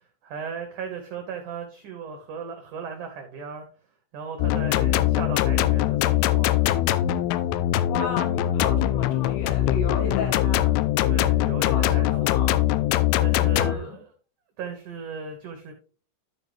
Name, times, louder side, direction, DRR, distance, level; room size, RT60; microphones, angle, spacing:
voice 1, 0.0-3.6 4.1-6.6 11.0-12.3 13.2-14.1 14.6-15.7, right 5 dB, 80° right, 4 dB, 1.8 m, -36 dB
sound 1, 4.4-13.8, left 13 dB, 90° left, 2.9 m, -22 dB
voice 2, 7.9-10.7 11.6-12.7 13.6-14.0, left 4 dB, 75° left, 1 dB, 3.8 m, -33 dB
13.0 x 4.6 x 3.2 m, 0.38 s
omnidirectional pair, 5.1 m